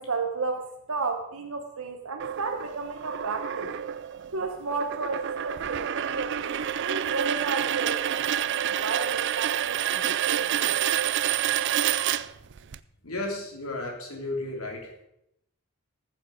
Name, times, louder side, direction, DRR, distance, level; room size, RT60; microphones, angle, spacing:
voice 1, 0.0-3.7 4.3-10.7, right 4 dB, 70° right, 4 dB, 1.0 m, -33 dB
sound 1, 2.2-12.8, right 10 dB, 55° right, 0.4 m, -28 dB
voice 2, 13.0-14.9, left 2 dB, 75° left, 0 dB, 3.3 m, -33 dB
14.5 x 7.5 x 5.1 m, 0.80 s
head